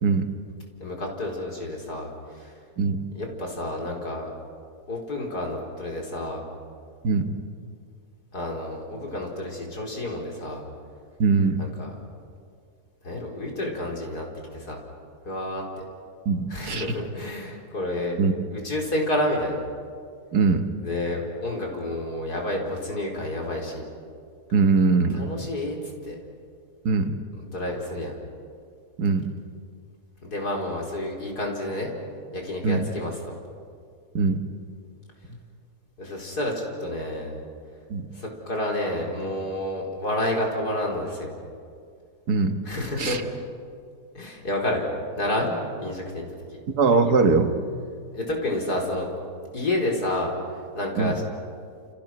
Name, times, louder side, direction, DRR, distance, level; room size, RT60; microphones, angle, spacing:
voice 1, 0.8-2.6 3.2-4.3 4.9-6.4 8.3-10.6 11.6-11.9 13.0-14.3 14.5-14.8 15.3-15.6 16.5-18.2 18.5-19.6 20.8-23.8 25.1-25.8 26.0-26.2 27.5-28.2 30.2-31.9 32.3-33.4 36.0-37.4 38.1-41.3 42.7-43.2 44.2-46.3 48.1-49.1 49.5-50.3 50.8-51.2, left 1 dB, 75° left, 0 dB, 5.1 m, -29 dB
voice 2, 7.0-7.4 11.2-11.7 16.3-16.9 18.2-18.3 20.3-20.7 24.5-25.2 26.9-27.2 29.0-29.3 32.6-32.9 34.1-34.4 37.9-38.1 42.3-42.5 43.0-43.2 46.7-47.6 51.0-51.2, right 4 dB, 75° right, 7 dB, 2.1 m, -21 dB
30.0 x 29.5 x 6.1 m, 2.3 s
omnidirectional pair, 1.7 m